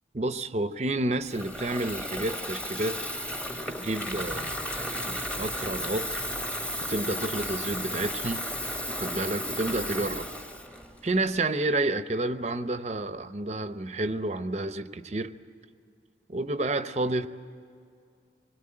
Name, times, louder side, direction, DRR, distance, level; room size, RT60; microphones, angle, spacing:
voice 1, 0.1-3.0 3.7-4.5 4.9-6.2 6.9-8.4 9.0-10.3 11.0-15.3 16.3-17.3, right 2 dB, 40° right, 10 dB, 0.7 m, -30 dB
Water tap faucet / Fill (with liquid), 1.2-11.5, equal, 5° left, 1.1 m, -34 dB
26.5 x 21.0 x 8.8 m, 2.3 s
head